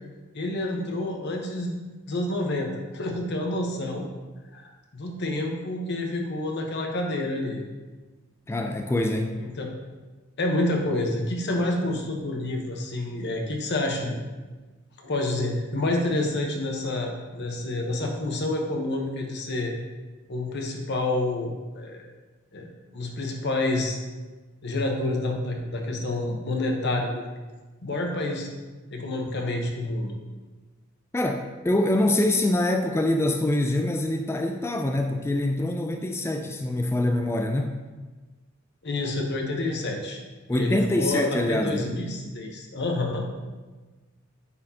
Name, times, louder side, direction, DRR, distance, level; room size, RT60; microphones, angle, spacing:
voice 1, 0.3-1.7 2.1-4.1 4.5-7.6 9.4-9.7 10.4-14.1 15.0-19.7 20.3-22.1 22.5-22.7 22.9-24.0 24.6-27.3 27.8-28.5 28.9-30.2 38.8-40.2 40.5-43.3, left 2 dB, 55° left, 1 dB, 1.0 m, -28 dB
voice 2, 8.5-9.4 31.1-37.8 40.5-41.9, left 1 dB, 10° left, 4 dB, 0.3 m, -25 dB
9.5 x 4.4 x 2.8 m, 1.3 s
head